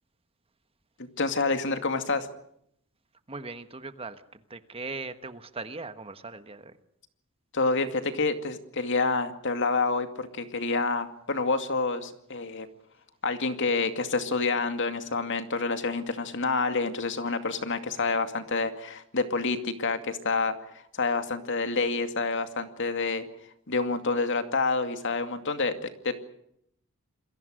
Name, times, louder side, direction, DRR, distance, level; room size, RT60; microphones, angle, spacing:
voice 1, 1.2-2.3 7.5-12.7 13.2-20.5 20.9-23.3 23.7-26.3, left 3 dB, 55° left, 8 dB, 2.3 m, -28 dB
voice 2, 3.3-4.2 4.5-6.8, right 3 dB, 25° right, 10 dB, 1.3 m, -39 dB
28.0 x 22.0 x 6.5 m, 0.72 s
head